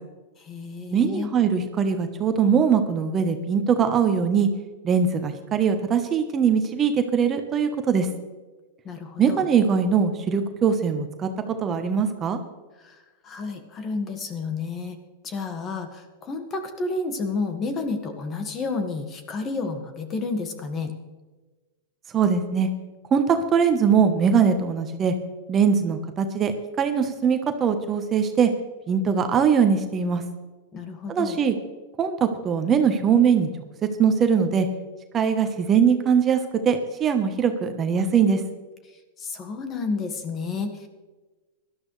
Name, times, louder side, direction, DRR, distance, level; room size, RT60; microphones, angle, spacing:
voice 1, 0.4-1.3 8.8-9.5 12.8-15.0 15.2-20.9 30.7-31.4 39.2-40.9, left 3 dB, 25° left, 6 dB, 1.7 m, -31 dB
voice 2, 0.9-4.5 4.8-8.1 9.2-12.4 22.1-22.7 23.1-25.1 25.5-26.5 26.8-28.5 28.9-30.2 31.1-31.5 32.0-33.5 34.0-34.7 35.1-36.4 36.6-38.4, right 6 dB, 25° right, 7 dB, 1.1 m, -21 dB
17.0 x 12.0 x 3.3 m, 1.2 s
hypercardioid pair, 130°, 0 cm